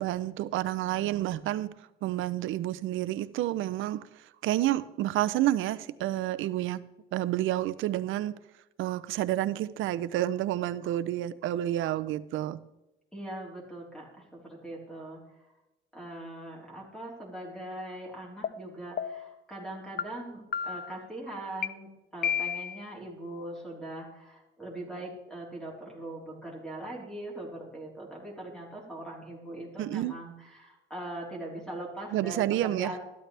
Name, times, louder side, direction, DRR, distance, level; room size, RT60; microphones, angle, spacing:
voice 1, 0.0-1.7 2.0-6.8 7.1-8.3 8.8-12.6 29.8-30.2 32.1-32.9, right 14 dB, 90° right, 14 dB, 0.7 m, -29 dB
voice 2, 13.1-15.5 15.9-33.0, right 1 dB, 5° left, -3 dB, 4.0 m, -41 dB
sound 1, 18.4-18.5 19.0-19.4 20.0-20.1 20.5-21.0 21.6-21.7 22.2-22.8, left 8 dB, 50° left, 0.7 m, -31 dB
13.5 x 12.0 x 3.4 m, 0.97 s
cardioid pair, 90°, 20 cm